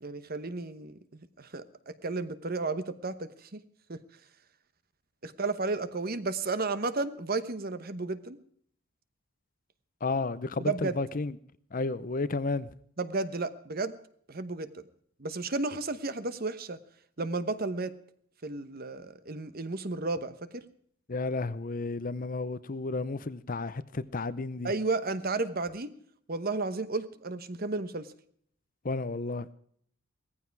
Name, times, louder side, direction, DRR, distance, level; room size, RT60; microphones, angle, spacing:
voice 1, 0.0-3.6 3.9-4.0 5.2-8.4 10.6-11.0 13.0-14.0 14.3-14.8 15.2-16.8 17.2-18.0 18.4-20.6 24.6-25.9 26.3-28.1, right 3 dB, 45° right, 1.0 m, -33 dB
voice 2, 10.0-11.4 11.7-12.7 21.1-24.7 28.8-29.5, left 3 dB, 40° left, 0.6 m, -32 dB
17.5 x 14.5 x 4.7 m
head